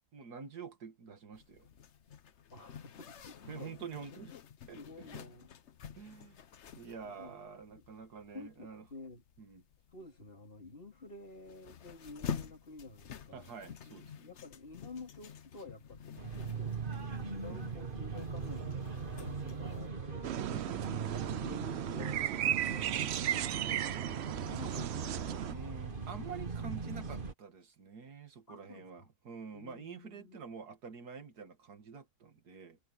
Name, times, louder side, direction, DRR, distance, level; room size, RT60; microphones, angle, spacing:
voice 1, 0.1-1.7 3.5-4.3 4.7-5.2 6.0-6.4 6.8-8.8 9.4-9.6 13.3-14.3 23.2-24.2 25.4-32.8, right 5 dB, 85° right, 2.3 m, -48 dB
Zipper (clothing), 1.3-19.9, left 7 dB, 50° left, 1.1 m, -49 dB
voice 2, 2.3-3.7 4.2-4.3 4.8-5.5 5.9-6.4 7.0-7.4 7.7-7.8 8.3-9.2 9.9-16.0 16.3-16.8 17.3-23.7 24.2-25.9 28.5-29.1 29.5-30.4, left 3 dB, 35° left, 3.1 m, -52 dB
sound 1, 16.2-27.3, right 5 dB, 35° right, 1.8 m, -40 dB
sound 2, 20.2-25.5, right 11 dB, 65° right, 0.6 m, -35 dB
omnidirectional pair, 1.6 m